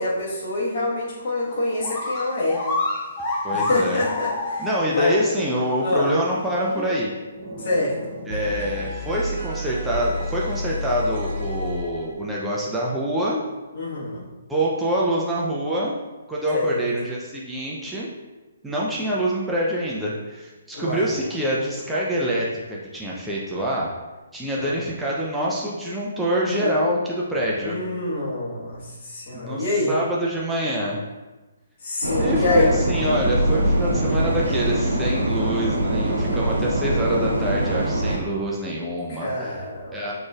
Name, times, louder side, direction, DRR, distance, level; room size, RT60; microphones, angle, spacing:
voice 1, 0.0-2.6 3.5-5.2 5.8-6.1 7.6-8.1 13.7-14.2 16.5-16.8 20.7-21.0 24.6-24.7 26.6-26.7 27.5-29.9 31.8-32.7 39.1-40.0, left 2 dB, 50° left, -6 dB, 1.5 m, -25 dB
sound 1, 1.5-1.6 1.8-5.1 5.5-5.6 6.3-6.4, left 2 dB, 25° left, 0.9 m, -27 dB
voice 2, 3.4-4.0 4.6-7.1 8.3-13.4 14.5-15.9 16.3-18.1 18.6-23.9 24.3-27.8 29.3-31.0 32.2-39.7 39.9-40.1, right 1 dB, 5° right, -5 dB, 0.5 m, -26 dB
sound 2, 6.6-7.0 7.3-12.2, left 1 dB, 45° right, 1.3 m, -31 dB
sound 3, 32.0-38.2, right 1 dB, 80° right, 0.8 m, -23 dB
6.1 x 3.1 x 2.4 m, 1.2 s
figure-of-eight pair, 130°, 0 cm